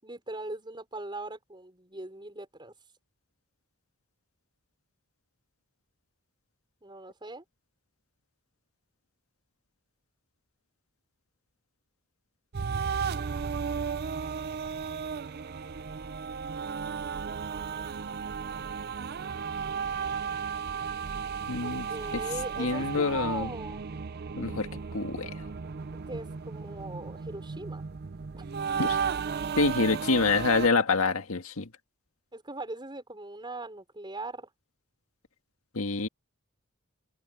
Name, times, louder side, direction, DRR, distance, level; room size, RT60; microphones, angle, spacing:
voice 1, 0.0-2.7 6.8-7.4 13.2-13.9 21.6-23.8 26.1-27.8 28.3-28.5 32.3-34.5, right 2 dB, 20° right, 5.7 m, -40 dB
sound 1, 12.5-30.7, right 6 dB, 50° right, 0.5 m, -34 dB
voice 2, 21.5-21.9 22.1-22.2 22.6-23.5 24.3-25.5 28.8-29.0 29.6-31.7 35.7-36.1, left 4 dB, 85° left, 1.8 m, -27 dB
head